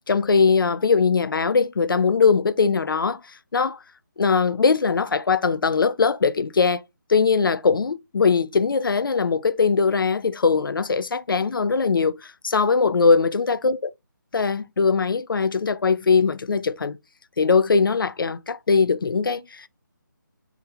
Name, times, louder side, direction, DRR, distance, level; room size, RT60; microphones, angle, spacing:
voice 1, 0.1-3.2 3.5-3.8 4.2-6.8 7.1-13.8 14.3-17.0 17.4-19.7, left 5 dB, 90° left, 0.4 m, -21 dB
2.9 x 2.3 x 3.3 m
figure-of-eight pair, 170°, 11 cm